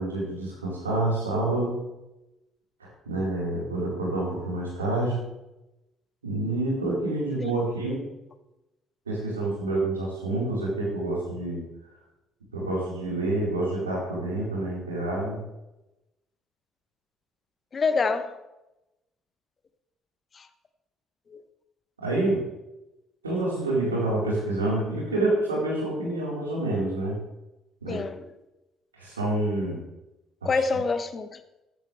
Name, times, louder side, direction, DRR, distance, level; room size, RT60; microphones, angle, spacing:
voice 1, 0.0-1.8 2.8-5.2 6.2-8.0 9.1-11.6 12.5-15.4 22.0-22.5 23.2-27.2 27.8-28.0 28.9-29.8 30.4-30.5, right 2 dB, 85° right, 4.4 m, -27 dB
voice 2, 17.7-18.4 20.3-20.5 21.3-21.4 27.9-28.2 30.4-31.4, left 4 dB, 35° left, 1.0 m, -26 dB
14.5 x 11.5 x 3.4 m
figure-of-eight pair, 50°, 0 cm